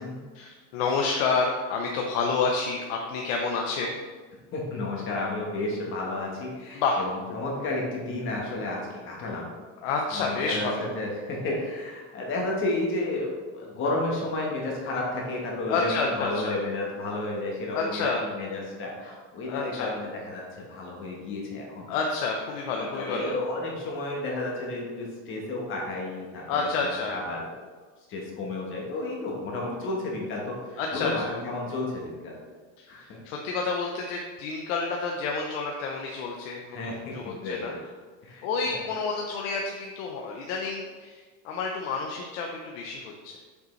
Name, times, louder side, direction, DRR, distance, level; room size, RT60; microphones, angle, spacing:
voice 1, 0.3-4.0 6.7-7.0 9.3-9.4 9.8-10.9 15.7-16.6 17.7-18.2 19.4-19.9 21.9-23.3 26.5-27.2 30.8-31.3 32.8-37.7 38.4-43.4, left 4 dB, 90° left, 0 dB, 0.9 m, -29 dB
voice 2, 4.5-9.5 10.1-21.9 22.7-27.5 28.1-32.4 32.9-33.2 36.7-37.8 38.2-38.8, left 2 dB, 30° left, -2 dB, 1.3 m, -32 dB
6.8 x 5.4 x 3.2 m, 1.4 s
cardioid pair, 170°, 38 cm